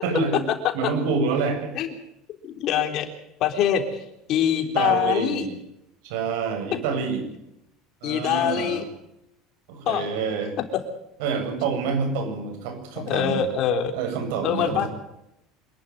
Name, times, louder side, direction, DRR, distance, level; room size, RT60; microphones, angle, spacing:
voice 1, 0.0-0.4 0.7-1.7 4.7-5.6 6.0-7.2 8.0-8.9 9.7-10.5 11.2-13.4 13.9-14.9, right 5 dB, 80° right, 5 dB, 7.5 m, -27 dB
voice 2, 2.4-3.1 3.4-3.8 4.3-5.5 8.0-8.8 9.9-10.1 13.1-14.0 14.4-14.9, left 9 dB, 50° left, 6 dB, 3.6 m, -23 dB
26.5 x 12.0 x 9.5 m, 0.82 s
cardioid pair, 135°, 0 cm